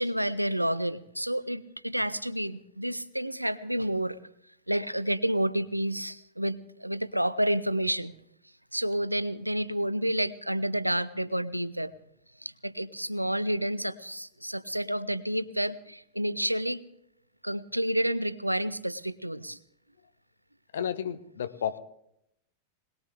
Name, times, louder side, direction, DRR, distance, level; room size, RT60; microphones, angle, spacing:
voice 1, 0.0-4.2 4.7-8.1 8.7-11.9 12.4-16.8 17.4-19.6, right 1 dB, 90° right, 18 dB, 0.6 m, -30 dB
voice 2, 20.7-21.8, left 8 dB, 65° left, 11 dB, 1.0 m, -32 dB
22.0 x 19.5 x 3.4 m, 0.75 s
figure-of-eight pair, 90°, 0 cm